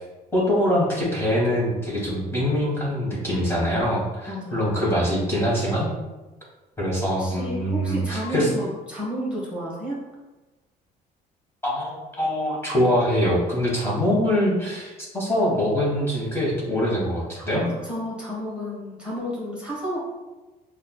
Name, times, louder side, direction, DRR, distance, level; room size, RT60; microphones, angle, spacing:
voice 1, 0.3-5.9 6.8-8.5 11.6-17.6, equal, 15° left, -5 dB, 1.2 m, -23 dB
voice 2, 4.3-4.7 7.2-10.0 17.3-20.1, equal, 5° right, -7 dB, 1.1 m, -31 dB
5.5 x 2.3 x 2.2 m, 1.1 s
cardioid pair, 110°, 17 cm